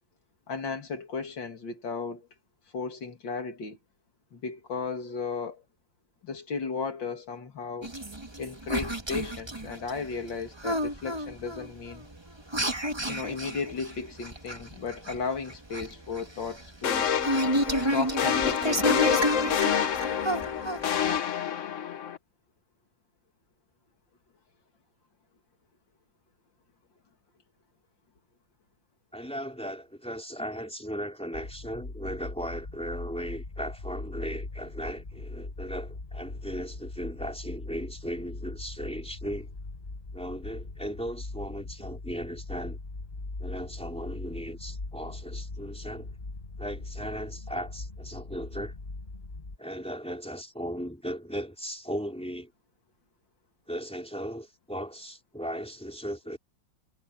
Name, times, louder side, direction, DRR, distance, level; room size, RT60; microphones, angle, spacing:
voice 1, 0.5-2.3 2.7-3.8 4.3-5.6 6.2-7.9 8.4-12.1 13.1-17.1 17.8-19.8, left 4 dB, 75° left, 3.2 m, -35 dB
sound 1, 7.8-21.2, right 1 dB, 15° right, 1.7 m, -31 dB
sound 2, 16.8-22.2, left 8 dB, 50° left, 1.1 m, -27 dB
voice 2, 29.1-39.5 40.1-42.8 43.4-46.1 46.6-48.7 49.6-52.5 53.7-56.4, equal, 5° left, 4.1 m, -37 dB
sound 3, 31.3-49.6, left 2 dB, 30° left, 1.4 m, -40 dB
omnidirectional pair, 2.0 m